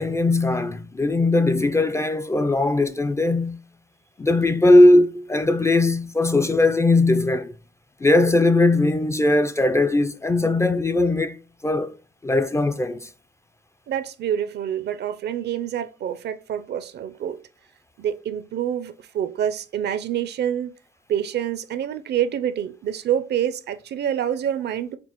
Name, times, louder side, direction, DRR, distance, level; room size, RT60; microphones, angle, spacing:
voice 1, 0.0-3.6 4.2-7.5 8.0-11.4 11.6-11.9 12.2-13.1, left 2 dB, 15° left, 0.3 m, -19 dB
voice 2, 13.9-17.4 18.0-20.7 21.1-25.0, right 9 dB, 60° right, 0.5 m, -27 dB
5.8 x 2.0 x 2.9 m
cardioid pair, 90°, 20 cm